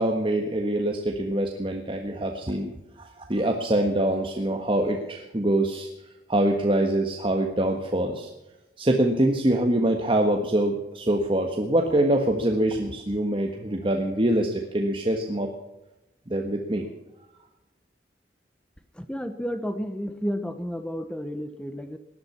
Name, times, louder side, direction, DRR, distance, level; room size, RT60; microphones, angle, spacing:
voice 1, 0.0-2.7 3.3-5.9 6.3-8.3 8.8-15.5 16.3-16.8, right 1 dB, 30° right, 2 dB, 1.5 m, -24 dB
voice 2, 18.9-22.0, equal, 5° left, 9 dB, 0.9 m, -31 dB
19.0 x 11.5 x 5.8 m, 0.96 s
head